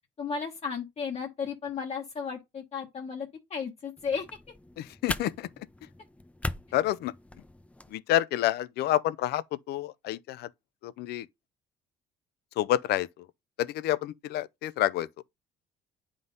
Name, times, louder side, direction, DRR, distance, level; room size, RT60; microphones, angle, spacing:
voice 1, 0.2-4.3, left 6 dB, 40° left, 1.0 m, -34 dB
sound 1, 4.0-7.9, left 2 dB, 10° left, 0.5 m, -40 dB
voice 2, 4.8-5.5 6.7-7.1 7.9-10.5 10.8-11.3 12.6-13.3 13.6-15.1, left 14 dB, 75° left, 0.5 m, -28 dB
9.4 x 3.7 x 3.9 m
cardioid pair, 110°, 17 cm